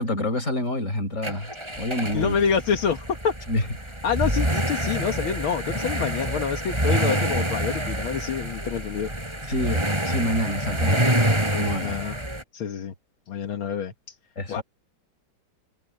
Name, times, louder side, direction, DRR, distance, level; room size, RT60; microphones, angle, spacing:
voice 1, 0.0-1.5 1.8-2.4 3.5-3.6 9.5-11.1 11.5-12.0 14.4-14.6, left 1 dB, 35° left, 5.2 m, -27 dB
sound 1, 1.2-12.4, right 1 dB, 10° right, 5.8 m, -27 dB
voice 2, 2.1-3.3 4.0-9.1 11.8-12.3 12.5-12.9 13.3-14.2 14.5-14.6, left 7 dB, 75° left, 2.3 m, -27 dB
omnidirectional pair, 2.3 m